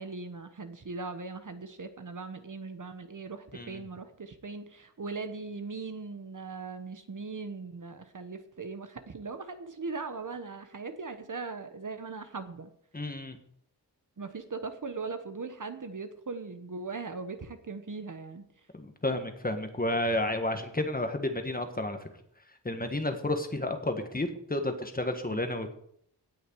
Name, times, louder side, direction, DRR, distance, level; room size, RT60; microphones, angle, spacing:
voice 1, 0.0-12.7 14.2-18.5, right 4 dB, 45° right, 9 dB, 1.1 m, -39 dB
voice 2, 3.5-3.8 12.9-13.4 18.7-22.1 22.6-25.7, left 1 dB, 20° left, 6 dB, 1.5 m, -31 dB
17.5 x 6.4 x 4.7 m, 0.67 s
wide cardioid pair, 95°, 42 cm